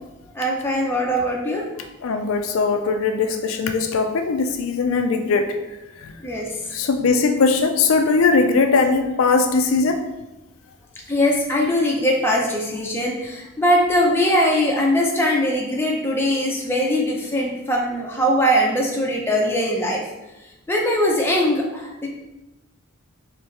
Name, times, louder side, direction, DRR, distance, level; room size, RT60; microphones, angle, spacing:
voice 1, 0.3-1.7 6.2-6.7 11.1-20.0 20.7-22.1, equal, 10° left, -2 dB, 0.6 m, -21 dB
voice 2, 2.0-5.5 6.0-6.1 6.7-10.0, left 4 dB, 75° left, 6 dB, 0.4 m, -20 dB
4.5 x 3.2 x 3.2 m, 0.99 s
head